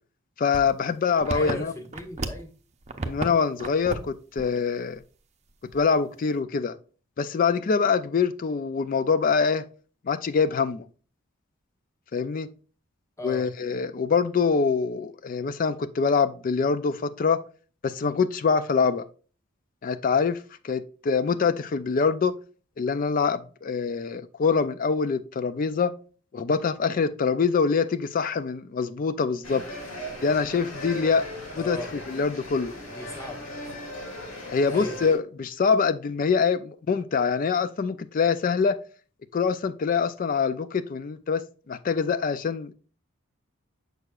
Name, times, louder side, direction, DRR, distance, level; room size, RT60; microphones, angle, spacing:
voice 1, 0.4-1.7 3.1-5.0 5.7-6.8 7.2-9.7 10.1-10.9 12.1-12.5 13.2-17.4 17.8-19.0 19.8-22.3 22.8-25.9 26.3-29.6 30.2-31.3 31.5-31.8 32.1-32.7 34.5-38.8 39.3-42.7, left 5 dB, 40° left, 0.3 m, -24 dB
sound 1, 0.5-2.5 2.8-3.3 3.6-4.1 4.4-4.6 5.0-5.1 5.7-6.1, right 3 dB, 30° right, 0.6 m, -33 dB
voice 2, 1.3-2.5 13.2-13.5 31.6-32.0 32.9-33.5 34.7-35.0, left 1 dB, 15° left, 1.3 m, -37 dB
sound 2, 29.4-35.2, left 1 dB, 90° left, 2.8 m, -38 dB
6.5 x 6.4 x 2.4 m
head